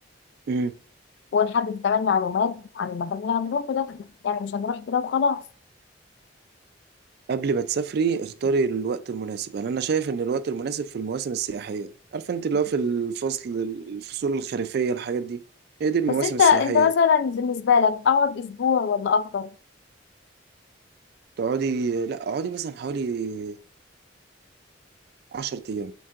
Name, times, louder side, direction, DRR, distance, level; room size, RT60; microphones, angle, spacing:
voice 1, 1.3-5.4 16.2-19.5, left 6 dB, 65° left, 0.3 m, -23 dB
voice 2, 7.3-15.4 15.8-16.9 21.4-23.6 25.3-25.9, right 5 dB, 55° right, 0.3 m, -27 dB
4.5 x 3.5 x 2.4 m
head